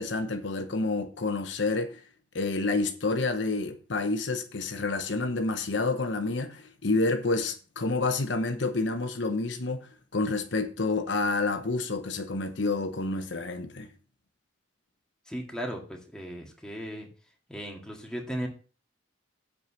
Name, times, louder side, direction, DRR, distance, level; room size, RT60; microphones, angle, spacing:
voice 1, 0.0-2.0 2.3-13.9, left 3 dB, 70° left, 0.9 m, -29 dB
voice 2, 15.3-17.1 17.5-18.5, equal, 5° left, 1.9 m, -36 dB
7.8 x 4.8 x 7.1 m
head